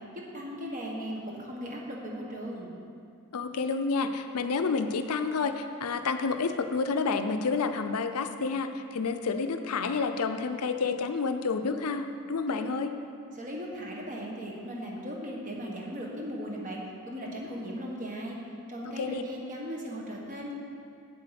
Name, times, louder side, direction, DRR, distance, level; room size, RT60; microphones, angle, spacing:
voice 1, 0.1-2.7 12.5-12.7 13.3-16.8 17.1-18.4 18.7-20.5, equal, 35° right, -2 dB, 1.5 m, -37 dB
voice 2, 3.3-12.9 19.0-19.2, left 4 dB, 80° left, 8 dB, 0.6 m, -29 dB
8.2 x 7.6 x 5.9 m, 2.4 s
head